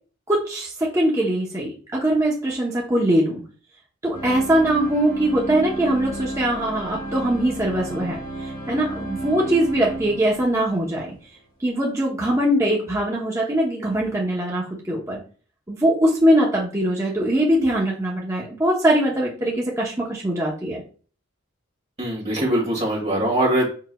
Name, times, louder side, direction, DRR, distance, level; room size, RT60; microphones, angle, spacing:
voice 1, 0.3-3.4 4.0-11.1 11.6-15.2 15.7-20.8, right 1 dB, 15° right, -4 dB, 0.8 m, -22 dB
sound 1, 4.1-11.2, right 2 dB, 45° left, 1.5 m, -32 dB
voice 2, 22.0-23.7, right 1 dB, 30° right, -3 dB, 2.2 m, -22 dB
4.7 x 4.7 x 2.3 m, 0.40 s
head